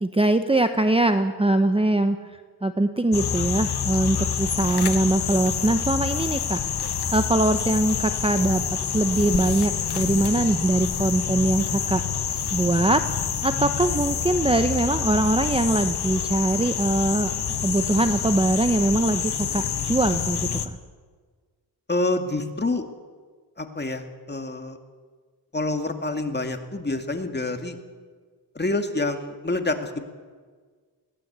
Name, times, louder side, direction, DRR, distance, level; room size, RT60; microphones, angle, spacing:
voice 1, 0.0-8.6 8.9-13.0 13.4-17.3 17.6-20.6, right 2 dB, 15° right, 8 dB, 0.9 m, -22 dB
sound 1, 3.1-20.7, left 7 dB, 70° left, 1.3 m, -27 dB
voice 2, 21.9-22.8 23.6-24.8 25.5-27.8 28.5-30.0, left 2 dB, 25° left, 5 dB, 2.3 m, -27 dB
21.0 x 16.0 x 8.2 m, 1.5 s
wide cardioid pair, 90°, 40 cm